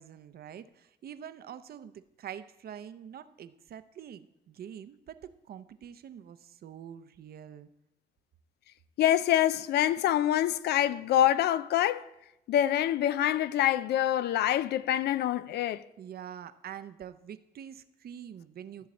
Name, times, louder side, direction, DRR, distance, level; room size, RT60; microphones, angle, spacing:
voice 1, 0.0-7.7 16.0-18.9, right 9 dB, 70° right, 0.6 m, -45 dB
voice 2, 9.0-12.0 12.5-15.8, left 12 dB, 90° left, 0.4 m, -26 dB
13.5 x 7.1 x 4.2 m
cardioid pair, 85°, 17 cm